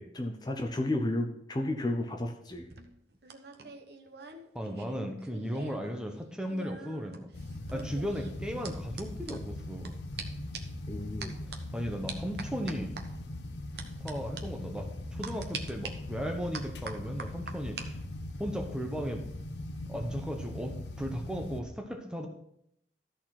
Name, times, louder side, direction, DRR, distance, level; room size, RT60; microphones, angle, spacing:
voice 1, 0.0-2.7 10.9-11.4, left 1 dB, 25° left, 3 dB, 0.8 m, -32 dB
sound 1, 2.5-5.9 6.2-9.9 10.2-10.3 10.5-10.8 11.2-11.6 12.1-13.0 13.8-14.1 14.4-14.5 15.2-15.9 16.5-17.9 18.2-18.5, right 5 dB, 70° right, 1.0 m, -44 dB
voice 2, 4.5-7.3 7.7-10.0 11.5-13.0 14.0-18.0 18.4-19.2 19.9-22.3, equal, 5° right, 3 dB, 0.9 m, -36 dB
sound 2, 7.3-21.6, left 1 dB, 80° left, 0.8 m, -40 dB
13.0 x 4.4 x 5.9 m, 0.73 s
head